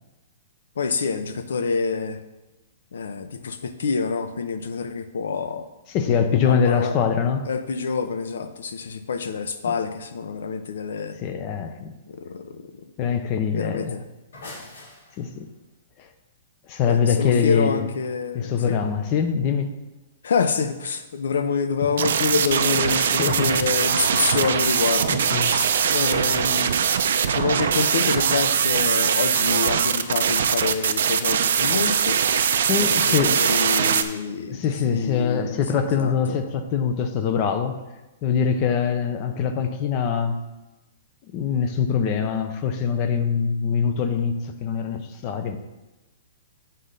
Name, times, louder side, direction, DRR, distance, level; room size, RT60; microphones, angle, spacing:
voice 1, 0.8-2.2 2.9-5.7 6.4-6.9 7.5-11.2 12.1-12.9 13.5-14.0 14.4-14.6 16.9-18.8 20.2-26.7 27.2-32.2 32.7-36.4, left 5 dB, 85° left, 10 dB, 0.7 m, -27 dB
voice 2, 5.9-7.5 9.7-9.8 11.2-11.9 13.0-14.0 15.2-15.5 16.0-16.1 16.7-17.8 18.3-19.7 22.0-22.1 23.0-23.6 24.2-24.4 25.3-25.8 32.7-33.4 34.5-37.8 38.2-40.4 41.3-45.6, left 7 dB, 25° left, 8 dB, 0.5 m, -23 dB
sound 1, 14.0-15.5, left 2 dB, 70° left, 3.0 m, -42 dB
sound 2, 21.9-34.0, right 7 dB, 65° right, 0.5 m, -21 dB
7.7 x 3.8 x 6.6 m, 1.1 s
hypercardioid pair, 175°, 0 cm